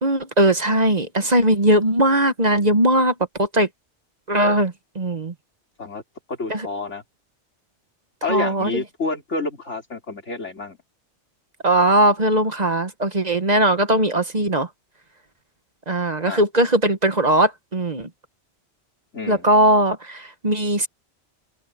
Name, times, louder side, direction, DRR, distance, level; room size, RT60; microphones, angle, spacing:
voice 1, 0.0-3.7 4.3-5.3 6.5-6.7 8.3-8.8 11.6-14.7 15.9-18.1 19.3-20.9, right 1 dB, 35° right, 1.3 m, -19 dB
voice 2, 6.3-7.0 8.2-10.8 16.2-16.4 19.1-19.5, left 3 dB, 80° left, 3.9 m, -28 dB
omnidirectional pair, 1.2 m